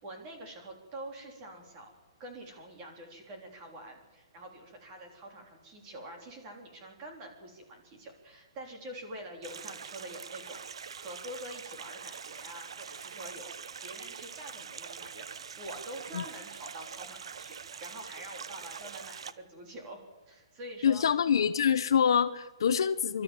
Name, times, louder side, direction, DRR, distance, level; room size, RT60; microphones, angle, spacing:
voice 1, 0.0-1.9 2.2-10.6 11.0-21.1, right 1 dB, 20° right, 2 dB, 3.5 m, -46 dB
sound 1, 9.4-19.3, right 6 dB, 80° right, 1.0 m, -44 dB
voice 2, 20.8-23.2, left 7 dB, 60° left, 12 dB, 0.9 m, -25 dB
27.0 x 13.0 x 7.5 m, 1.2 s
hypercardioid pair, 180°, 3 cm